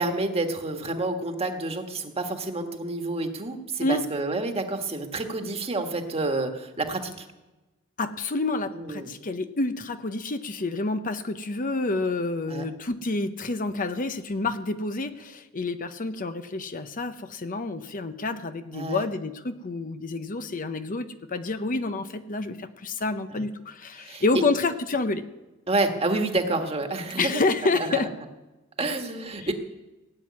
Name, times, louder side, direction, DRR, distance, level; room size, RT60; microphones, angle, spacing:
voice 1, 0.0-7.3 8.7-9.1 12.5-12.6 18.7-19.0 23.3-23.5 24.0-24.4 25.7-27.3 27.7-28.0 28.8-29.5, right 2 dB, 30° right, 5 dB, 1.6 m, -29 dB
voice 2, 8.0-25.2 27.2-28.1, left 3 dB, 40° left, 9 dB, 0.8 m, -28 dB
17.0 x 7.6 x 9.6 m, 1.1 s
head